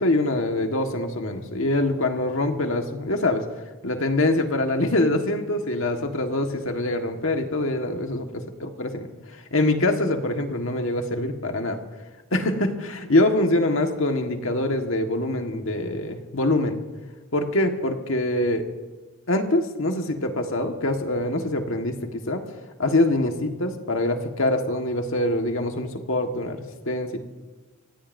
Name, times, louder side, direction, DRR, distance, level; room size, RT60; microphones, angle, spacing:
voice 1, 0.0-3.4 3.8-8.2 8.6-9.1 9.5-11.8 12.3-16.8 17.3-18.7 19.3-22.4 22.8-27.2, left 1 dB, 75° left, 4 dB, 1.6 m, -24 dB
27.0 x 16.5 x 2.7 m, 1.2 s
head